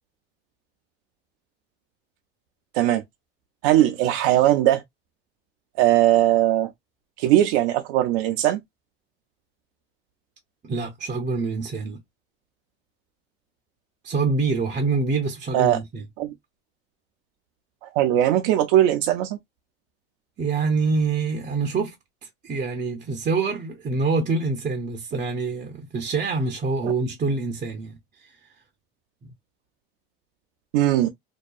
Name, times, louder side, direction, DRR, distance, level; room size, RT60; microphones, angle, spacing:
voice 1, 3.6-4.8 5.8-6.7 7.2-8.6 15.5-15.8 16.2-16.3 17.8-19.4 26.8-26.9 30.7-31.1, right 13 dB, 75° right, 0.5 m, -19 dB
voice 2, 10.6-12.0 14.0-16.1 20.4-21.9 22.2-28.5, right 4 dB, 25° right, 0.6 m, -26 dB
2.7 x 2.2 x 2.2 m
supercardioid pair, 100°, 29 cm